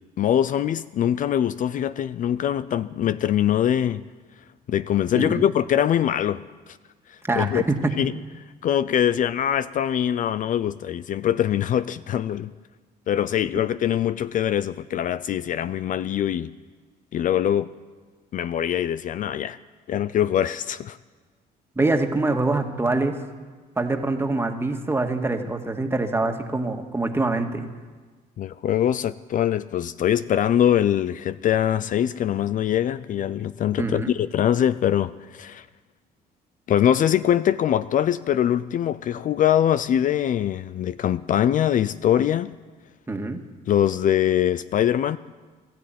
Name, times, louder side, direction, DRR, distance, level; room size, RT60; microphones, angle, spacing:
voice 1, 0.2-4.0 4.7-6.4 6.7-6.8 7.1-7.6 8.0-8.1 8.6-12.5 13.1-16.5 17.1-17.7 18.3-19.6 19.9-21.0 28.4-35.7 36.7-42.5 43.7-45.2, left 10 dB, 50° left, 15 dB, 0.5 m, -23 dB
voice 2, 5.1-5.5 7.2-7.9 21.8-23.2 23.8-27.7 33.8-34.1 43.1-43.4, right 2 dB, 15° right, 4 dB, 2.0 m, -24 dB
21.5 x 13.5 x 9.3 m, 1.4 s
cardioid pair, 110°, 17 cm